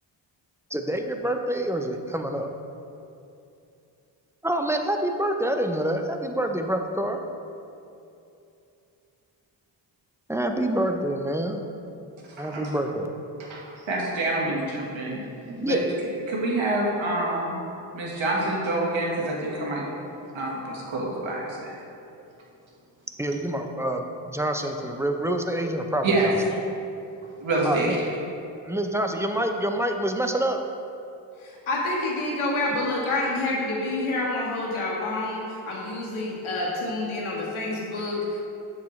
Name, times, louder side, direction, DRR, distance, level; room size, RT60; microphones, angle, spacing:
voice 1, 0.7-2.5 4.4-7.2 10.3-11.6 12.3-13.1 14.5-14.6 15.6-15.8 23.2-24.1 24.3-26.3 27.6-28.0 28.6-30.6, right 1 dB, 5° right, 5 dB, 0.6 m, -27 dB
voice 2, 12.4-12.7 13.5-15.8 16.3-17.6 17.9-19.9 20.3-21.8 26.0-26.3 27.4-28.0, right 2 dB, 65° right, -3 dB, 1.7 m, -27 dB
voice 3, 31.4-38.4, left 2 dB, 70° left, -4 dB, 1.7 m, -28 dB
7.2 x 6.8 x 3.2 m, 2.7 s
supercardioid pair, 45°, 50 cm